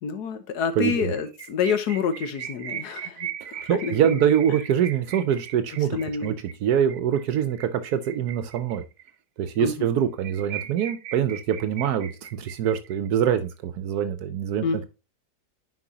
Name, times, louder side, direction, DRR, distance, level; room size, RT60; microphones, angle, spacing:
voice 1, 0.0-3.3 3.6-4.3 5.9-6.4 9.6-9.9 14.6-14.8, left 6 dB, 80° left, 1.5 m, -28 dB
voice 2, 0.8-1.1 3.4-6.3 6.6-8.8 9.4-14.8, right 9 dB, 75° right, 1.2 m, -24 dB
sound 1, 1.2-9.1 9.5-9.6 9.8-9.9 10.2-13.3, right 9 dB, 60° right, 0.7 m, -39 dB
9.9 x 4.6 x 2.8 m
omnidirectional pair, 1.7 m